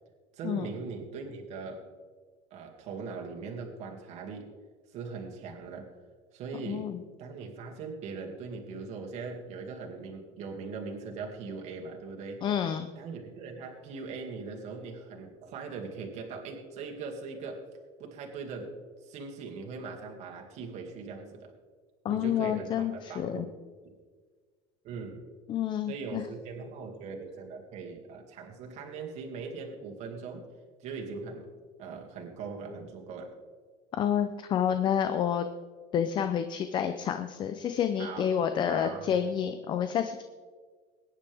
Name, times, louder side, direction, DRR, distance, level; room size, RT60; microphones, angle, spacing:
voice 1, 0.3-1.9 2.5-4.5 4.9-5.9 6.3-12.4 13.0-17.7 18.0-21.5 22.1-23.5 23.8-23.9 24.8-25.3 25.9-30.5 30.8-31.5 31.8-33.4 38.0-38.3 38.7-39.2, right 4 dB, 45° right, 1 dB, 2.4 m, -40 dB
voice 2, 6.7-7.0 12.4-12.9 22.0-23.5 25.5-26.2 33.9-35.5 35.9-40.2, left 9 dB, 30° left, 8 dB, 0.6 m, -29 dB
22.5 x 10.0 x 3.5 m, 1.5 s
cardioid pair, 160°, 15 cm